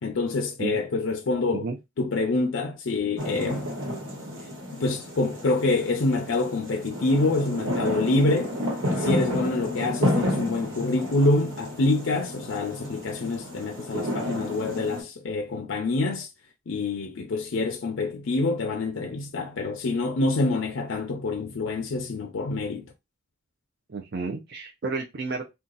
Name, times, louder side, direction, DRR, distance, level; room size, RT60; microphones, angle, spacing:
voice 1, 0.0-1.7 2.0-3.7 4.7-8.6 8.8-16.3 16.7-22.9, left 2 dB, 70° left, 0.5 m, -26 dB
sound 1, 3.2-15.0, left 1 dB, 85° right, 1.3 m, -31 dB
voice 2, 23.9-25.5, right 4 dB, 50° right, 0.5 m, -32 dB
2.7 x 2.3 x 3.8 m
head